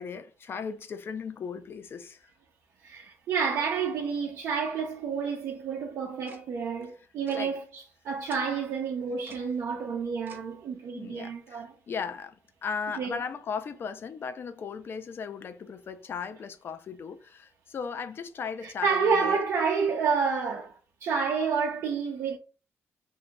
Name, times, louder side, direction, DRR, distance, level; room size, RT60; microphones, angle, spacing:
voice 1, 0.0-2.3 7.3-7.6 9.3-9.4 10.9-19.4, left 6 dB, 50° left, 0.5 m, -37 dB
voice 2, 2.8-11.7 13.0-13.2 18.6-22.4, right 5 dB, 75° right, 0.7 m, -29 dB
Tick-tock, 6.3-6.4 7.3-7.4 8.3-8.4 9.3-9.4 10.3-10.4, right 3 dB, 40° right, 1.0 m, -48 dB
2.8 x 2.7 x 3.4 m
cardioid pair, 95°, 5 cm